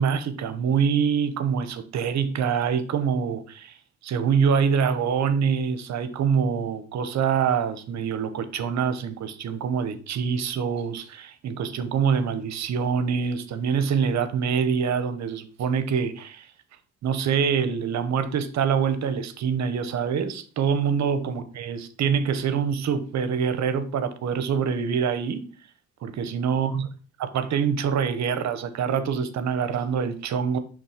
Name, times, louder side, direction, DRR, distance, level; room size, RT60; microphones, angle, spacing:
voice 1, 0.0-3.7 4.0-16.5 17.0-25.4 26.0-26.9 27.2-30.6, right 6 dB, 65° right, 0.9 m, -25 dB
5.8 x 3.5 x 5.0 m
cardioid pair, 90°, 30 cm